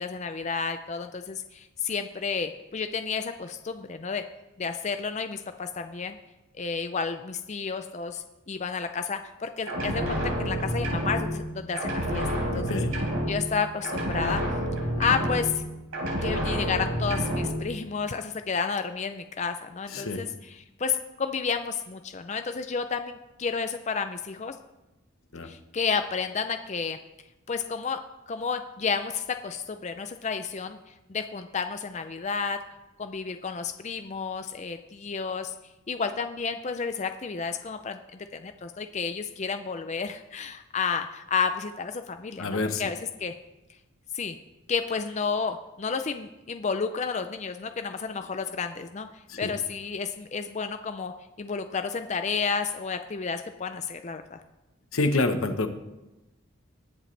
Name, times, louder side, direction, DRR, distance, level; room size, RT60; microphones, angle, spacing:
voice 1, 0.0-4.2 4.6-6.2 6.6-12.3 12.5-12.8 13.3-14.4 15.0-15.6 16.2-24.6 25.4-27.0 27.5-32.6 33.0-35.5 35.9-38.0 38.3-43.3 44.1-44.4 44.7-49.1 49.4-54.4, left 5 dB, 35° left, 8 dB, 0.4 m, -31 dB
sound 1, 9.7-11.5 11.7-13.6 13.8-15.7 15.9-17.6, equal, 80° right, 3.7 m, -29 dB
voice 2, 12.5-13.0 19.9-20.3 25.3-25.5 42.4-42.8 49.3-49.5 54.9-55.7, left 2 dB, 80° left, 8 dB, 1.0 m, -27 dB
20.0 x 7.7 x 3.3 m, 1.0 s
head